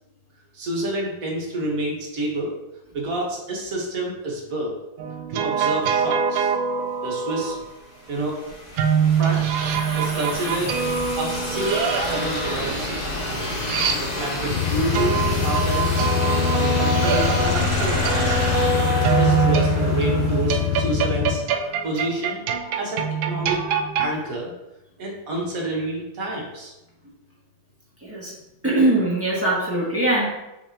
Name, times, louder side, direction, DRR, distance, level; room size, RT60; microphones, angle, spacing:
voice 1, 0.5-2.6 2.9-4.8 5.3-6.5 7.0-7.6 8.1-8.4 9.1-9.4 9.9-10.7 11.1-13.0 14.0-16.1 16.6-18.5 18.9-21.4 21.8-22.4 22.8-23.6 24.0-24.5 25.0-26.7, right 2 dB, 45° right, -2 dB, 1.7 m, -29 dB
sound 1, 5.0-7.5 8.8-14.5 14.9-24.1, right 6 dB, 80° right, 1.3 m, -24 dB
sound 2, 7.5-21.2, left 1 dB, 40° left, 0.6 m, -30 dB
sound 3, 14.5-21.4, left 10 dB, 80° left, 0.7 m, -24 dB
voice 2, 28.0-28.4 28.6-30.4, right 2 dB, 5° right, -7 dB, 1.6 m, -22 dB
5.9 x 5.7 x 2.9 m, 0.96 s
omnidirectional pair, 2.2 m